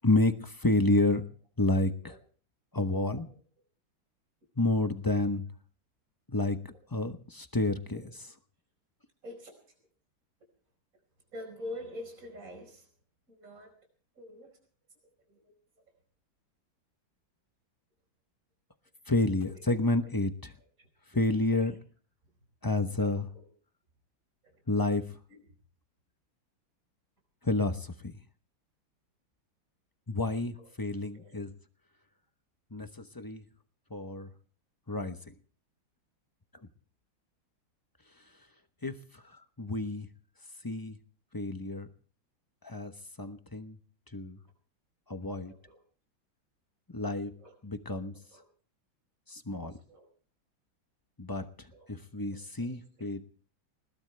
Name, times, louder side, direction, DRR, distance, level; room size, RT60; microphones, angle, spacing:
voice 1, 0.0-1.2 1.6-2.1 2.7-3.3 4.6-5.5 6.3-6.6 6.9-8.0 19.1-20.3 21.1-21.7 22.6-23.2 24.7-25.0 27.4-27.9 30.1-31.5 32.7-32.9 33.1-33.4 33.9-34.3 34.9-35.2 38.8-38.9 39.6-40.1 40.6-41.0 41.3-41.9 42.6-42.9 43.2-43.8 44.1-44.4 45.1-45.5 46.9-47.3 47.6-48.1 49.3-49.7 51.2-51.5 51.9-53.2, left 2 dB, 20° left, 8 dB, 0.5 m, -29 dB
voice 2, 9.2-9.7 11.3-12.9 13.3-13.8 14.2-14.5 15.3-15.4 19.5-19.6 20.0-20.1 20.6-20.9 21.5-21.8 23.0-23.5 24.4-24.6 25.3-25.5 30.5-30.7 31.1-31.4 45.5-45.8 47.3-47.6 48.3-48.5 49.7-50.1 51.7-51.9 52.3-53.1, left 1 dB, 40° right, 3 dB, 5.4 m, -47 dB
21.0 x 19.5 x 3.4 m, 0.43 s
omnidirectional pair, 2.2 m